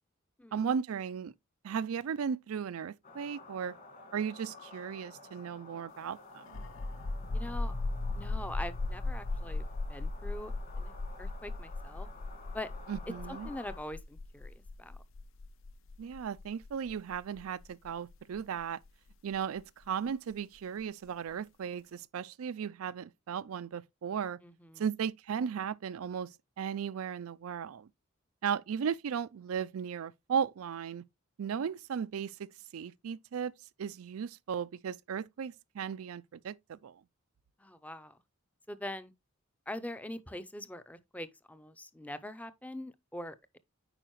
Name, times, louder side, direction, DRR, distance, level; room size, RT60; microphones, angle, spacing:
voice 1, 0.5-1.3 1.6-3.8 4.1-6.6 12.9-13.5 16.0-18.8 19.2-24.4 24.8-27.9 28.4-31.0 31.4-33.5 33.8-37.0, right 7 dB, 85° right, 0.4 m, -36 dB
sound 1, 3.0-13.8, left 3 dB, 45° left, 2.1 m, -52 dB
sound 2, 6.5-19.8, left 2 dB, 65° left, 0.5 m, -37 dB
voice 2, 7.3-7.7 8.2-9.6 9.9-10.9 11.2-12.1 12.5-12.7 13.3-15.0 24.4-24.8 37.6-38.2 38.7-39.1 39.7-43.6, left 1 dB, 5° left, 0.5 m, -43 dB
9.0 x 5.0 x 3.0 m
head